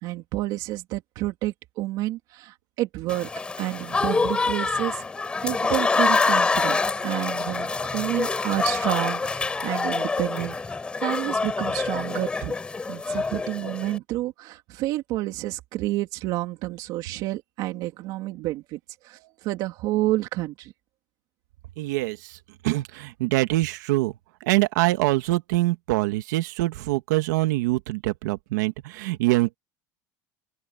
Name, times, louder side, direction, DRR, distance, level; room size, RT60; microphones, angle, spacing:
voice 1, 0.0-3.3 3.6-5.1 5.4-10.6 11.0-12.5 12.9-20.7, right 17 dB, 45° right, 2.8 m, -29 dB
Applause / Crowd, 3.1-14.0, left 4 dB, 10° left, 5.9 m, -26 dB
voice 2, 21.8-22.4 22.6-24.1 24.4-29.6, right 19 dB, 85° right, 2.2 m, -24 dB
open air
cardioid pair, 170°, 9 cm